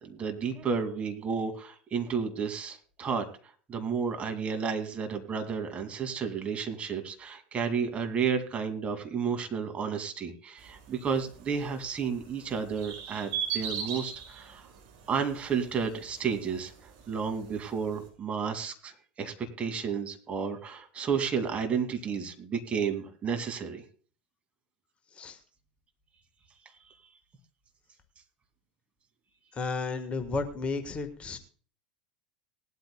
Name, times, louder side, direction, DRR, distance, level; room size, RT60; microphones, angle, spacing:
voice 1, 0.0-3.2 3.7-14.7 15.1-16.7 17.1-23.8, right 6 dB, 25° right, 4 dB, 2.4 m, -32 dB
sound 1, 10.6-18.1, right 8 dB, 50° right, 5.9 m, -41 dB
voice 2, 29.5-31.4, left 4 dB, 25° left, 8 dB, 1.4 m, -33 dB
19.0 x 12.5 x 2.3 m, 0.41 s
figure-of-eight pair, 80°, 5 cm